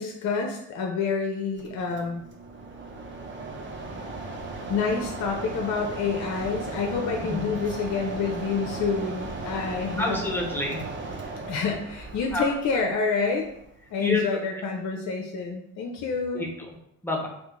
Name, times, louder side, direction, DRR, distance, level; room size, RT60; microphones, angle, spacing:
voice 1, 0.0-2.2 4.7-10.2 11.5-13.5 13.9-16.5, left 5 dB, 40° left, 2 dB, 0.5 m, -28 dB
Mechanisms, 1.6-13.9, right 3 dB, 30° right, 0.6 m, -37 dB
voice 2, 10.0-10.9 12.3-12.5 14.0-14.2 16.3-16.7 17.0-17.3, left 2 dB, 5° left, 0 dB, 0.8 m, -28 dB
2.8 x 2.5 x 3.5 m, 0.76 s
figure-of-eight pair, 45°, 43 cm